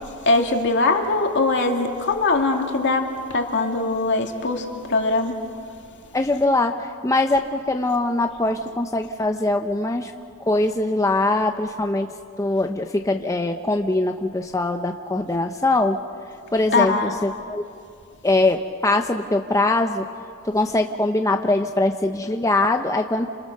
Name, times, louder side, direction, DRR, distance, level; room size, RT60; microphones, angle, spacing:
voice 1, 0.3-5.4 16.7-17.1, left 3 dB, 55° left, 3 dB, 2.4 m, -21 dB
voice 2, 6.1-10.1 10.5-12.1 12.4-16.0 16.5-17.7 18.2-20.1 20.4-23.3, left 2 dB, 15° left, 4 dB, 0.8 m, -22 dB
30.0 x 27.0 x 6.7 m, 2.4 s
head